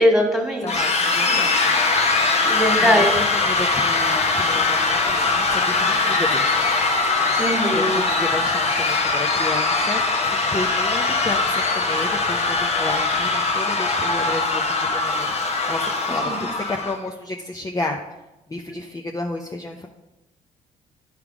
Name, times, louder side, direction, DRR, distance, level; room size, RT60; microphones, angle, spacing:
voice 1, 0.0-0.9 2.5-3.2 7.4-8.0 16.3-16.4, equal, 5° right, 1 dB, 2.1 m, -20 dB
voice 2, 0.6-1.8 2.8-6.4 7.7-18.0 18.5-19.9, left 2 dB, 20° left, 2 dB, 0.7 m, -31 dB
sound 1, 0.7-17.0, left 3 dB, 40° left, 1.1 m, -21 dB
9.9 x 3.5 x 4.8 m, 0.99 s
hypercardioid pair, 55°, 17 cm